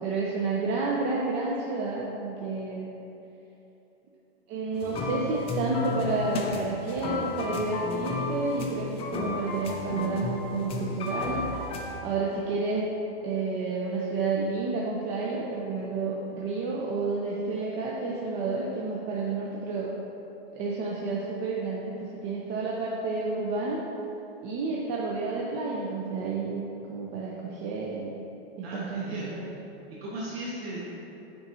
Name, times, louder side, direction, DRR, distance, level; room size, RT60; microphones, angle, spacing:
voice 1, 0.0-2.9 4.5-11.4 12.0-12.9 13.2-19.9 20.5-23.8 24.4-28.2 28.6-29.5, right 3 dB, 35° right, -4 dB, 0.6 m, -30 dB
sound 1, 4.7-12.0, left 3 dB, 20° left, 0.4 m, -33 dB
voice 2, 28.6-29.3 30.0-30.8, right 1 dB, 75° right, -7 dB, 1.4 m, -36 dB
7.0 x 5.0 x 2.7 m, 3.0 s
hypercardioid pair, 135°, 30 cm